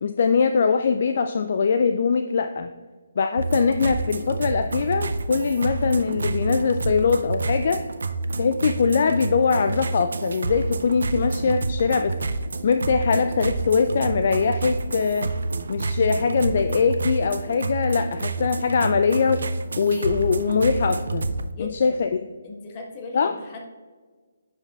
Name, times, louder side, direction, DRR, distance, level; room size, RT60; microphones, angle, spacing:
voice 1, 0.0-2.7 3.2-7.8 8.4-12.1 12.6-15.3 15.7-19.4 19.8-21.3 21.6-22.1 23.1-23.3, left 5 dB, 55° left, 8 dB, 0.3 m, -22 dB
sound 1, 3.4-21.5, right 3 dB, 70° right, 0.4 m, -29 dB
voice 2, 21.5-22.0 22.4-23.7, left 2 dB, 30° left, 1 dB, 1.2 m, -37 dB
10.0 x 4.9 x 2.3 m, 1.4 s
figure-of-eight pair, 145°, 0 cm